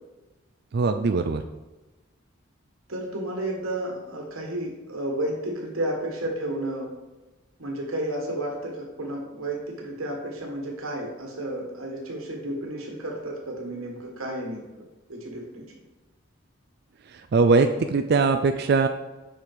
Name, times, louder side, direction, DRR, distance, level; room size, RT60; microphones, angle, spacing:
voice 1, 0.7-1.4 17.3-18.9, right 4 dB, 50° right, 7 dB, 0.4 m, -21 dB
voice 2, 2.9-6.9 7.6-14.6 15.1-15.6, right 1 dB, 85° right, 0 dB, 1.6 m, -32 dB
7.3 x 5.3 x 4.9 m, 1.1 s
head